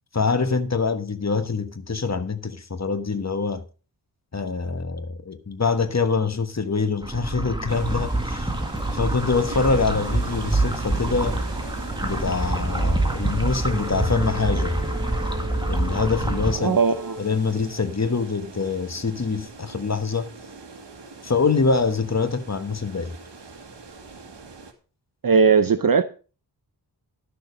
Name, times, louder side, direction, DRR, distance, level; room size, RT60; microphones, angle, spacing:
voice 1, 0.1-3.6 4.3-8.5 8.9-11.4 12.0-14.8 15.7-16.8 17.2-20.3 21.2-23.1, left 4 dB, 40° left, 1.2 m, -25 dB
sound 1, 7.0-16.5, right 2 dB, 10° right, 1.8 m, -26 dB
sound 2, 7.7-24.7, right 4 dB, 75° right, 1.9 m, -42 dB
Wind instrument woodwind instrument, 13.6-18.0, equal, 30° right, 3.5 m, -38 dB
voice 2, 16.6-17.2 25.2-26.0, right 5 dB, 50° right, 0.7 m, -18 dB
12.0 x 6.8 x 5.2 m
wide cardioid pair, 70°, 42 cm